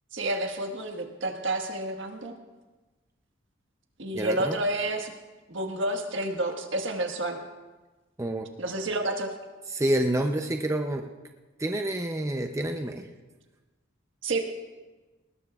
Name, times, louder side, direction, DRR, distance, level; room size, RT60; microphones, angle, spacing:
voice 1, 0.1-2.3 4.0-5.1 5.5-7.4 8.6-9.3 14.2-14.6, right 1 dB, 65° right, 4 dB, 1.5 m, -30 dB
voice 2, 4.1-4.6 8.2-8.5 9.7-11.1 11.6-13.1, right 1 dB, 15° right, 4 dB, 0.6 m, -28 dB
20.5 x 19.5 x 2.4 m, 1.2 s
head